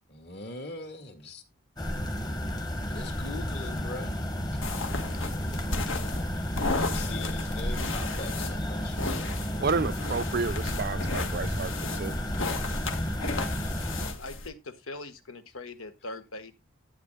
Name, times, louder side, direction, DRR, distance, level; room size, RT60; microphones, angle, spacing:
voice 1, 0.1-1.4 2.8-4.2 5.2-5.9 6.3-9.5, left 2 dB, 50° left, 2.1 m, -42 dB
sound 1, 1.8-14.1, equal, 20° left, 1.1 m, -32 dB
sound 2, 4.6-14.5, left 3 dB, 75° left, 1.6 m, -34 dB
voice 2, 9.6-12.2, right 4 dB, 45° right, 0.5 m, -31 dB
voice 3, 14.2-16.5, left 2 dB, 90° left, 1.4 m, -41 dB
12.0 x 9.2 x 2.3 m
head